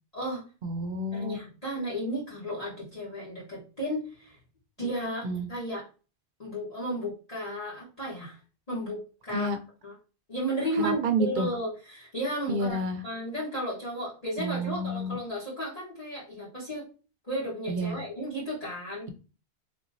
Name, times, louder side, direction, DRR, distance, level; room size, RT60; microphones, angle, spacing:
voice 1, 0.6-1.4 5.2-5.5 9.3-9.6 10.7-11.5 12.5-13.0 14.4-15.2 17.7-18.0, right 1 dB, 55° right, 7 dB, 0.7 m, -29 dB
voice 2, 1.1-4.3 4.8-5.8 6.4-8.4 8.7-9.5 9.8-9.9 10.3-12.8 13.0-16.9 17.3-19.1, equal, 35° left, -7 dB, 1.4 m, -34 dB
3.6 x 2.9 x 2.5 m, 0.34 s
omnidirectional pair, 1.1 m